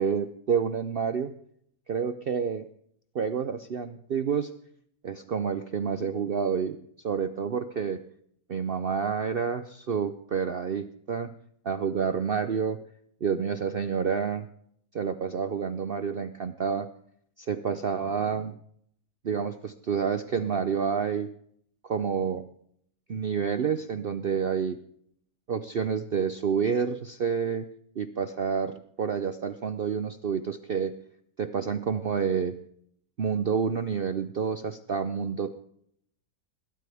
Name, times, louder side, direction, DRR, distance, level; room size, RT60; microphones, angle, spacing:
voice 1, 0.0-1.3 1.9-2.7 3.1-4.5 5.0-8.0 8.5-11.3 11.6-12.8 13.2-14.5 14.9-16.9 17.4-18.6 19.2-21.3 21.8-22.4 23.1-24.8 25.5-27.7 28.0-30.9 31.4-32.6 33.2-35.5, right 6 dB, 85° right, 10 dB, 0.5 m, -29 dB
20.5 x 13.0 x 3.5 m, 0.66 s
omnidirectional pair, 1.9 m